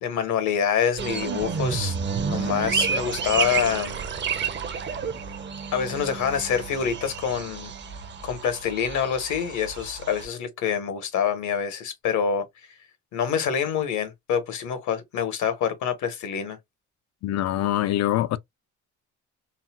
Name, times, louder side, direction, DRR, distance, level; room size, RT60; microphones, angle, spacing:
voice 1, 0.0-1.9 2.2-4.0 5.7-7.7 8.2-12.5 13.1-16.6, left 7 dB, 75° left, 1.2 m, -26 dB
sound 1, 1.0-10.2, right 6 dB, 40° right, 0.6 m, -30 dB
voice 2, 17.2-18.4, left 13 dB, 60° left, 0.4 m, -24 dB
4.0 x 2.1 x 2.3 m
cardioid pair, 90°, 30 cm